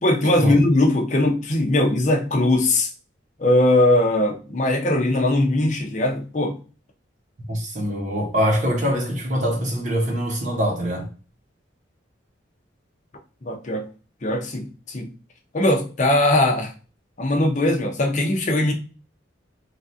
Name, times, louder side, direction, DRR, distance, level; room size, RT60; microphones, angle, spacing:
voice 1, 0.0-2.9 3.4-6.6 13.4-13.8 14.2-15.1 15.5-16.7 17.2-18.7, left 1 dB, 40° left, 0.5 m, -20 dB
voice 2, 7.5-11.1, equal, 40° right, 0.8 m, -23 dB
3.2 x 2.4 x 2.6 m
head